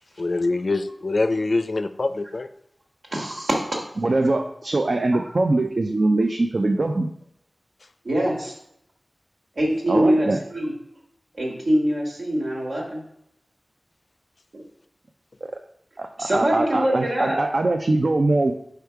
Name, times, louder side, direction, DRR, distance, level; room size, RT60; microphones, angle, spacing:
voice 1, 0.2-2.5, left 3 dB, 60° left, 10 dB, 0.4 m, -24 dB
voice 2, 3.1-3.6 5.1-5.2 8.0-8.5 9.6-10.7 11.3-13.0 14.5-14.6 16.2-17.4, right 1 dB, 75° right, -2 dB, 1.7 m, -23 dB
voice 3, 4.0-7.1 9.9-10.4 16.0-18.5, right 2 dB, 60° right, 4 dB, 0.5 m, -22 dB
5.1 x 4.6 x 4.6 m, 0.75 s
wide cardioid pair, 70°, 0 cm